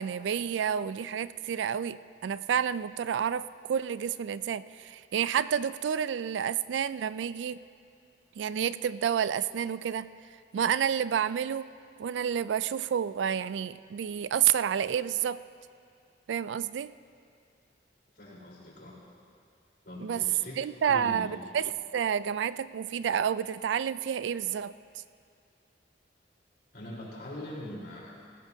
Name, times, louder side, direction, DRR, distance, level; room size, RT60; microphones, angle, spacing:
voice 1, 0.0-7.6 8.4-10.1 10.5-11.7 12.0-15.4 16.3-16.9 20.0-20.2 20.6-24.7, right 8 dB, 85° right, 16 dB, 0.3 m, -29 dB
voice 2, 18.1-18.9 19.8-20.6 20.9-21.3 26.7-28.2, left 1 dB, 60° left, -5 dB, 3.9 m, -42 dB
18.5 x 15.5 x 2.7 m, 2.3 s
head